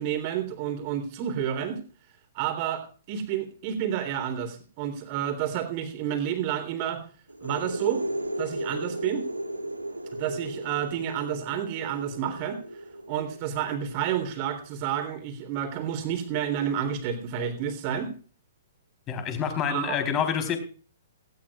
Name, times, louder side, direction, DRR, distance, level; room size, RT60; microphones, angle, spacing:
voice 1, 0.0-1.8 2.3-7.0 7.4-8.0 8.4-9.2 10.1-12.6 13.1-18.1 19.7-20.0, right 9 dB, 35° right, 8 dB, 3.5 m, -30 dB
sound 1, 7.3-14.8, right 1 dB, 90° right, 2.8 m, -35 dB
voice 2, 19.1-20.6, left 8 dB, 25° left, 7 dB, 4.0 m, -27 dB
18.0 x 17.0 x 2.5 m, 0.38 s
figure-of-eight pair, 115°, 0 cm